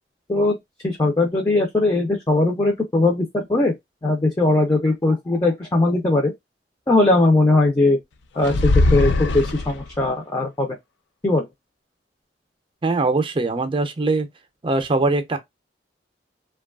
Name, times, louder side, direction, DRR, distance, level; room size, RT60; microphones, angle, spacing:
voice 1, 0.8-3.7 4.0-6.3 6.9-8.0 8.4-10.8 11.2-11.5, left 2 dB, 20° left, 0.5 m, -19 dB
sound 1, 8.4-10.1, left 2 dB, 75° left, 0.4 m, -20 dB
voice 2, 12.8-14.3 14.6-15.4, right 3 dB, 30° right, 0.5 m, -21 dB
3.0 x 2.3 x 2.3 m
head